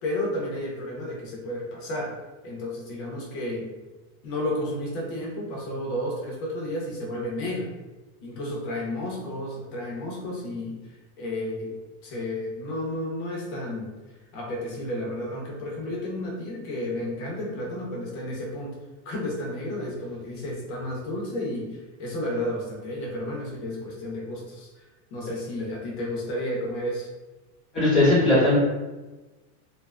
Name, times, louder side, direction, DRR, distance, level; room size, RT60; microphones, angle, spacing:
voice 1, 0.0-2.1 2.4-3.7 4.2-7.7 8.2-10.8 11.2-11.7 12.0-13.9 14.3-18.8 19.1-24.7 25.1-27.1, left 1 dB, 35° left, -3 dB, 0.6 m, -32 dB
voice 2, 27.7-28.6, left 2 dB, ahead, -13 dB, 1.1 m, -18 dB
2.5 x 2.3 x 2.3 m, 1.2 s
supercardioid pair, 180°, 43 cm